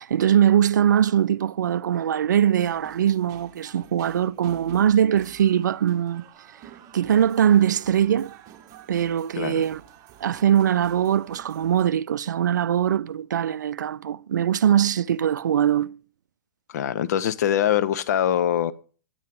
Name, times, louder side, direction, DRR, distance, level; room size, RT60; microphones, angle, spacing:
voice 1, 0.0-6.3 6.9-8.3 8.9-9.8 10.2-16.0, right 9 dB, 75° right, 0.4 m, -21 dB
sound 1, 2.6-11.9, right 10 dB, 35° right, 0.9 m, -49 dB
voice 2, 16.7-18.7, left 10 dB, 60° left, 0.7 m, -23 dB
9.1 x 8.4 x 4.8 m
hypercardioid pair, 110°, 10 cm